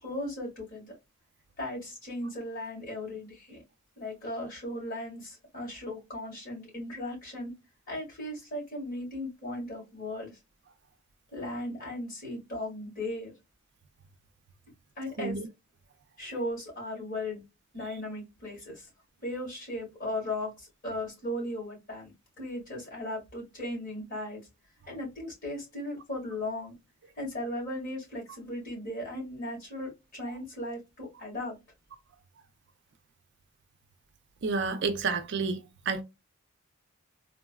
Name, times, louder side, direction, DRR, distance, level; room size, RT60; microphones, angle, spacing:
voice 1, 0.0-1.0 1.6-3.6 4.0-7.5 7.9-10.4 11.3-13.3 15.0-15.4 16.2-17.4 17.7-18.9 19.2-22.1 22.4-24.4 24.9-26.7 27.2-31.6, left 1 dB, 40° left, 1.9 m, -37 dB
voice 2, 34.4-35.6 35.9-36.0, right 4 dB, 55° right, 0.4 m, -29 dB
3.8 x 2.0 x 2.2 m
head